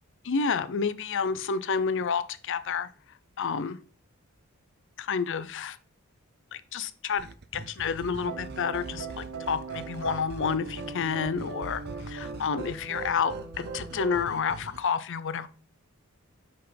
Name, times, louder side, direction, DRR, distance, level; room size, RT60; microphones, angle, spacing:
voice 1, 0.2-2.9 3.4-3.8 5.0-5.8 6.5-7.3 7.5-15.5, left 6 dB, 60° left, 14 dB, 0.6 m, -30 dB
sound 1, 7.2-14.8, right 3 dB, 50° right, 0.6 m, -44 dB
sound 2, 8.2-14.3, right 4 dB, 90° right, 1.0 m, -39 dB
6.7 x 5.0 x 3.8 m, 0.38 s
head